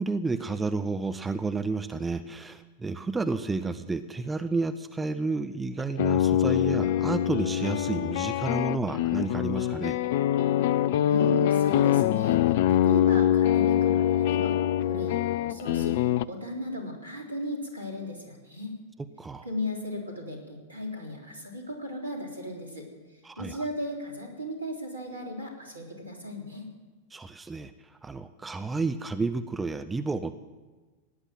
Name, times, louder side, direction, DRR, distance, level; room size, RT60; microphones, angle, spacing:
voice 1, 0.0-10.0 19.2-19.5 23.2-23.6 27.1-27.7 28.0-30.3, right 3 dB, 10° right, 10 dB, 0.7 m, -31 dB
sound 1, 5.8-16.2, left 11 dB, 50° left, 0.4 m, -24 dB
voice 2, 11.1-16.0 16.3-18.7 19.4-22.9 23.4-26.7, left 1 dB, 80° right, 1 dB, 3.5 m, -36 dB
17.5 x 10.0 x 7.7 m, 1.3 s
figure-of-eight pair, 90°, 0 cm